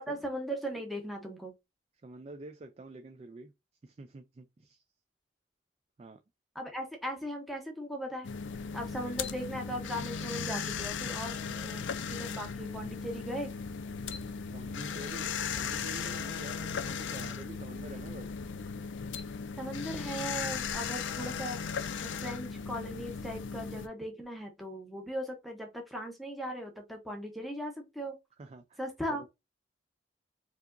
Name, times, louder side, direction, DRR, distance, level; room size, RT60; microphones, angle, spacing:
voice 1, 0.0-1.5 6.5-8.3 8.7-13.5 19.6-28.2 28.8-29.2, equal, ahead, 0.7 m, -38 dB
voice 2, 2.0-3.5 3.8-4.8 6.0-6.2 14.5-18.4 28.4-28.8 29.1-29.3, right 3 dB, 35° right, 0.3 m, -48 dB
sound 1, 8.2-23.9, left 6 dB, 85° left, 0.4 m, -37 dB
4.7 x 2.8 x 2.5 m
head